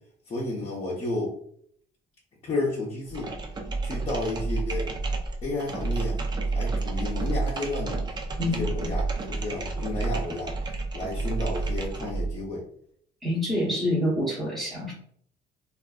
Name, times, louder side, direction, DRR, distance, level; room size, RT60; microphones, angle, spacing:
voice 1, 0.3-1.4 2.4-3.3 3.8-4.9 5.4-6.2 6.5-8.0 8.4-10.5 10.9-12.6, left 2 dB, 35° left, -5 dB, 0.6 m, -32 dB
sound 1, 3.1-12.4, right 3 dB, 25° right, 0.4 m, -30 dB
voice 2, 13.2-14.9, left 1 dB, ahead, -9 dB, 0.8 m, -26 dB
2.6 x 2.4 x 2.2 m, 0.64 s
cardioid pair, 110°, 17 cm